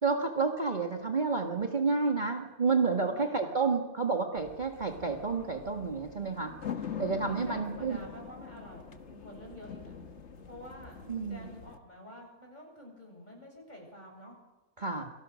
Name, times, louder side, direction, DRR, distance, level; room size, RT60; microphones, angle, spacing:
voice 1, 0.0-6.5 7.0-8.0 11.1-11.5 14.8-15.1, right 4 dB, 30° right, 3 dB, 1.9 m, -30 dB
voice 2, 3.0-3.6 7.2-9.9 10.4-14.4, left 1 dB, 30° left, 1 dB, 8.2 m, -49 dB
sound 1, 4.4-11.8, left 7 dB, 50° left, 1.8 m, -44 dB
28.5 x 25.5 x 6.4 m, 1.2 s
omnidirectional pair, 1.5 m